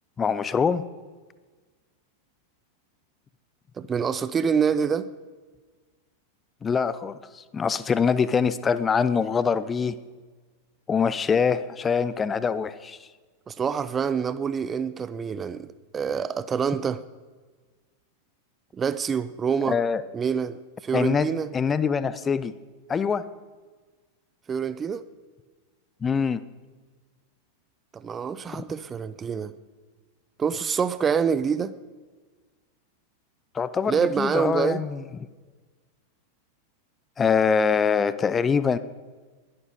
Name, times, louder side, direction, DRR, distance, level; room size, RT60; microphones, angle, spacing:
voice 1, 0.2-0.9 6.6-10.0 10.9-13.0 19.7-20.0 20.9-21.3 21.5-22.5 22.9-23.2 26.0-26.4 33.5-35.0 37.2-38.8, left 6 dB, 20° left, 16 dB, 0.6 m, -24 dB
voice 2, 3.8-5.1 13.5-15.7 15.9-17.0 18.7-19.8 20.1-21.5 24.5-25.0 27.9-29.5 30.4-31.7 33.9-34.8, right 6 dB, 20° right, 15 dB, 0.6 m, -26 dB
21.0 x 11.5 x 5.2 m, 1.4 s
figure-of-eight pair, 90°, 0 cm